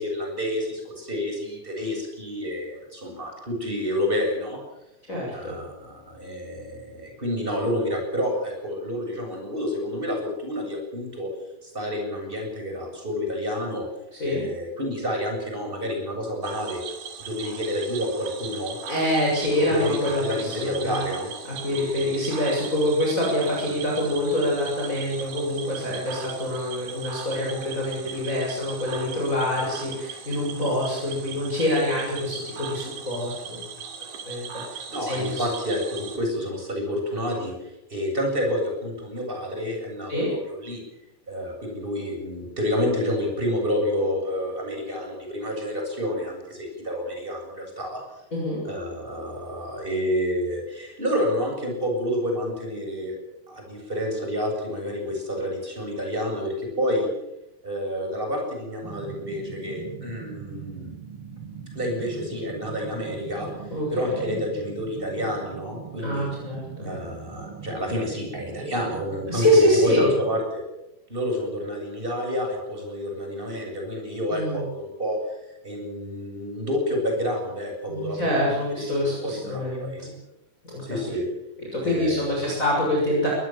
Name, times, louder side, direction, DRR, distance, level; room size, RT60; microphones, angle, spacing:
voice 1, 0.0-4.6 5.3-11.3 11.6-13.9 14.2-16.8 17.2-18.8 19.7-21.3 34.9-40.8 41.3-48.0 48.6-53.1 53.5-57.1 57.6-60.9 61.7-63.5 63.9-66.3 66.8-70.6 71.1-75.4 75.6-80.1 80.8-81.3 81.8-82.5, equal, 10° right, 2 dB, 7.6 m, -29 dB
voice 2, 5.1-5.6 14.1-14.4 18.9-21.0 21.5-33.6 34.3-35.5 40.1-40.3 48.3-48.6 63.7-63.9 64.2-64.4 66.0-66.9 69.3-70.1 74.3-74.6 77.9-80.1 80.6-81.2 81.7-83.3, left 1 dB, 15° left, -3 dB, 6.9 m, -25 dB
Cricket / Frog, 16.4-36.2, right 7 dB, 80° right, 4.9 m, -39 dB
sound 1, 58.8-70.4, right 8 dB, 40° right, 2.5 m, -41 dB
23.5 x 20.0 x 7.6 m, 0.90 s
omnidirectional pair, 4.9 m